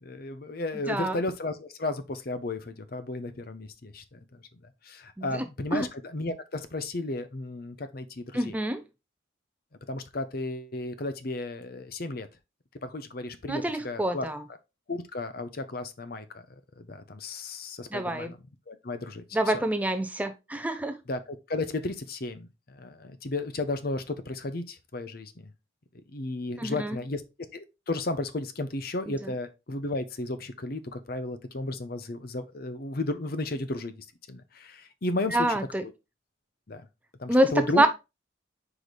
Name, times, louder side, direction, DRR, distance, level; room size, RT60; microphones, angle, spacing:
voice 1, 0.0-4.2 4.8-8.6 9.9-12.3 12.8-14.3 14.9-16.2 16.8-19.2 19.5-19.6 21.1-25.3 26.1-27.2 27.5-33.9 34.3-35.9 36.7-36.8 37.2-37.9, left 2 dB, 50° left, 0.7 m, -34 dB
voice 2, 0.9-1.2 5.2-5.3 5.7-5.9 8.3-8.8 13.5-14.4 17.9-18.3 19.3-21.0 26.6-27.0 29.1-29.3 35.3-35.8 37.3-37.9, right 1 dB, 10° right, 0.4 m, -26 dB
4.9 x 4.8 x 4.1 m
head